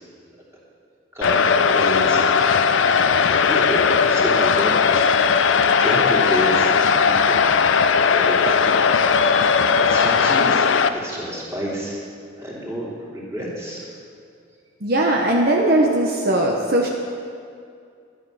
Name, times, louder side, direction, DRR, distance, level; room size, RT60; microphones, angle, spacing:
voice 1, 1.1-2.3 3.1-6.8 7.0-7.5 8.1-8.8 9.2-12.0 12.4-13.9, equal, 15° right, -6 dB, 3.1 m, -30 dB
sound 1, 1.2-10.9, left 6 dB, 90° left, 0.6 m, -17 dB
voice 2, 14.8-16.9, right 1 dB, 55° right, -1 dB, 1.0 m, -19 dB
11.5 x 11.0 x 6.4 m, 2.3 s
head